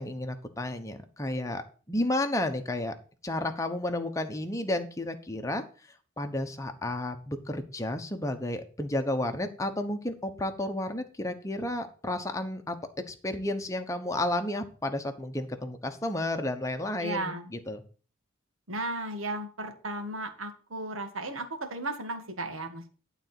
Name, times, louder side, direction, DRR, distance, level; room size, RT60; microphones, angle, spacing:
voice 1, 0.0-1.6 1.9-2.9 3.2-5.6 6.2-12.8 13.1-17.8, left 1 dB, 15° left, 6 dB, 1.0 m, -32 dB
voice 2, 17.0-17.5 18.7-23.0, right 2 dB, 90° right, 5 dB, 1.9 m, -35 dB
12.0 x 4.0 x 7.6 m, 0.39 s
head